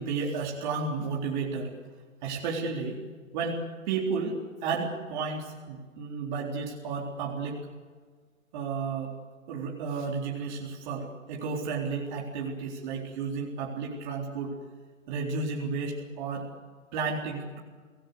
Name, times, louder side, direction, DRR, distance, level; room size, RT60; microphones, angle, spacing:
voice 1, 0.0-1.7 2.2-3.0 3.3-7.7 8.5-9.1 9.5-14.5 15.1-16.5 16.9-17.6, right 4 dB, 35° right, -1 dB, 4.0 m, -32 dB
26.5 x 19.0 x 8.1 m, 1.5 s
figure-of-eight pair, 125°, 39 cm